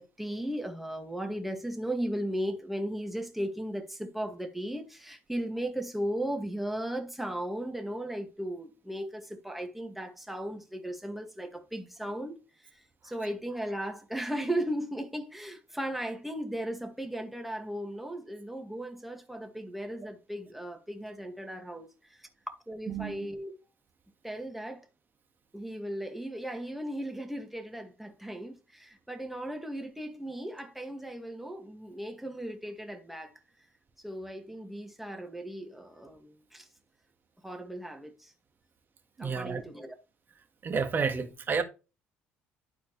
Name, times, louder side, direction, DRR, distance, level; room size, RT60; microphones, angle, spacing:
voice 1, 0.0-12.4 12.7-22.3 22.7-23.6 24.2-24.9 25.5-33.3 34.0-36.7 37.4-38.3 39.2-39.9, right 1 dB, 5° right, 1.9 m, -36 dB
voice 2, 39.2-39.6 40.6-41.6, right 5 dB, 40° right, 1.7 m, -30 dB
11.5 x 4.4 x 3.2 m
supercardioid pair, 75°, 5 cm